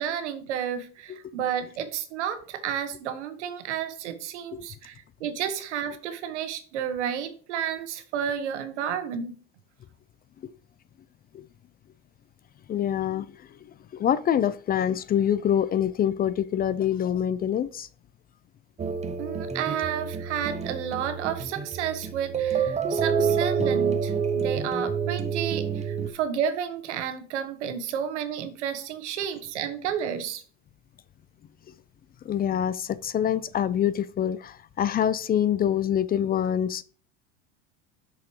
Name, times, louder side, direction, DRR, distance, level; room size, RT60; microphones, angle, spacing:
voice 1, 0.0-9.3 19.2-30.4, right 8 dB, 85° right, 1.2 m, -31 dB
voice 2, 12.7-13.3 14.0-17.9 32.3-36.8, left 9 dB, 25° left, 0.4 m, -25 dB
sound 1, 18.8-26.1, right 6 dB, 20° right, 0.7 m, -28 dB
8.4 x 6.2 x 3.1 m
supercardioid pair, 95°, 34 cm